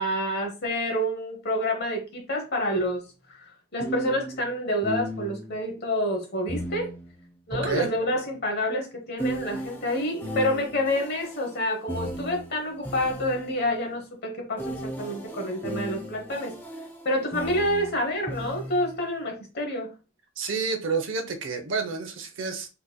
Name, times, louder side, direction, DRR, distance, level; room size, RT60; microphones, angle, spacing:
voice 1, 0.0-3.0 3.3-6.9 7.5-16.5 17.0-19.9, left 1 dB, 50° left, 1.0 m, -28 dB
sound 1, 2.8-2.9 3.8-5.6 6.5-8.4 9.2-13.7 14.6-19.1, right 1 dB, 10° left, 0.5 m, -36 dB
voice 2, 7.5-7.9 20.4-22.7, right 4 dB, 60° right, 0.6 m, -29 dB
3.8 x 3.0 x 2.2 m
head